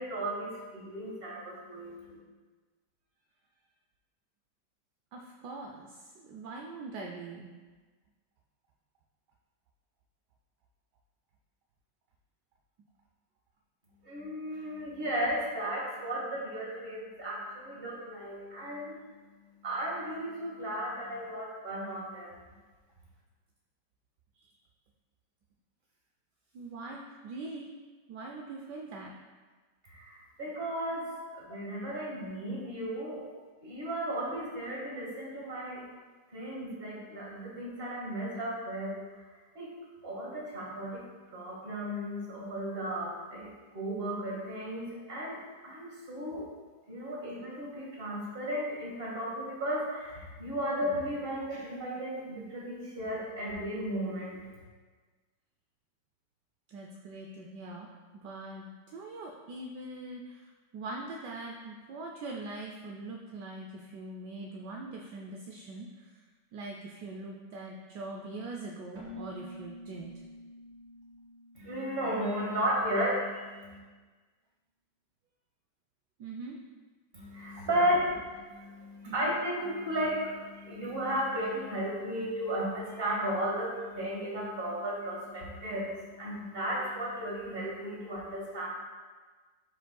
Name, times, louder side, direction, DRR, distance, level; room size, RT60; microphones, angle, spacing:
voice 1, 0.0-2.2 14.0-22.5 29.8-31.1 31.3-33.3 33.6-35.8 36.3-39.0 39.5-39.7 40.0-41.1 41.3-46.5 46.9-54.4 71.5-73.8 77.1-78.0 78.3-88.7, equal, 30° right, -4 dB, 1.9 m, -34 dB
voice 2, 5.1-7.5 24.4-24.5 26.5-27.7 28.1-29.1 31.3-31.4 33.3-33.4 56.7-57.9 58.2-66.2 66.5-70.1 76.2-76.6 77.7-78.0 79.1-79.3, right 2 dB, 70° right, 0 dB, 1.2 m, -42 dB
Keyboard (musical), 68.9-72.6, left 1 dB, 90° right, 2.0 m, -48 dB
11.5 x 5.1 x 2.3 m, 1.4 s
omnidirectional pair, 2.0 m